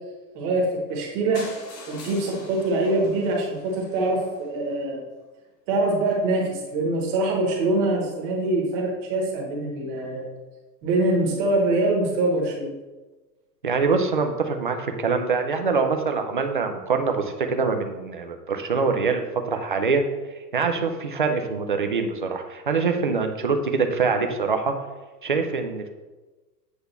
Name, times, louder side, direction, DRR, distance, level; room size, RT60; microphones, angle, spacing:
voice 1, 0.3-1.4 1.9-5.0 5.7-10.3 10.8-12.7, right 2 dB, 20° right, -1 dB, 1.0 m, -24 dB
sound 1, 1.3-5.2 5.9-6.0 6.2-6.3 6.6-6.7 6.9-7.0, left 2 dB, 25° left, 1.1 m, -43 dB
voice 2, 13.6-20.0 20.5-24.7 25.2-25.9, right 4 dB, 35° right, 5 dB, 0.4 m, -24 dB
8.1 x 3.4 x 6.6 m, 1.2 s
supercardioid pair, 175°, 50 cm